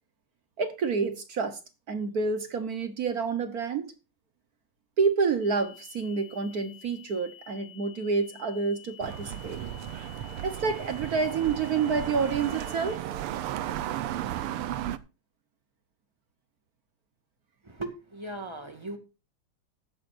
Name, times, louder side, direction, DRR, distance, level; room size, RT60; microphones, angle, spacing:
voice 1, 0.6-1.6 1.9-3.9 5.0-9.6 10.4-13.1, right 5 dB, 50° right, 1.3 m, -28 dB
sound 1, 5.4-13.0, left 10 dB, 70° left, 2.7 m, -51 dB
sound 2, 9.0-15.0, right 12 dB, 80° right, 1.7 m, -34 dB
voice 2, 17.6-19.0, right 2 dB, 15° right, 2.1 m, -38 dB
15.5 x 13.5 x 2.6 m
omnidirectional pair, 2.4 m